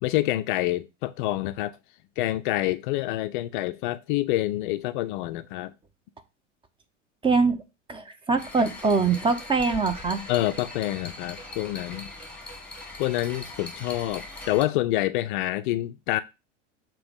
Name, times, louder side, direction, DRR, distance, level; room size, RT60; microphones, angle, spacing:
voice 1, 0.0-1.8 2.2-5.7 10.3-12.1 13.0-16.2, left 16 dB, 45° left, 0.4 m, -27 dB
voice 2, 7.2-7.6 7.9-10.2, right 4 dB, 15° right, 0.5 m, -23 dB
sound 1, 8.4-14.6, left 2 dB, 5° left, 1.5 m, -41 dB
6.9 x 3.0 x 5.2 m
figure-of-eight pair, 85°, 38 cm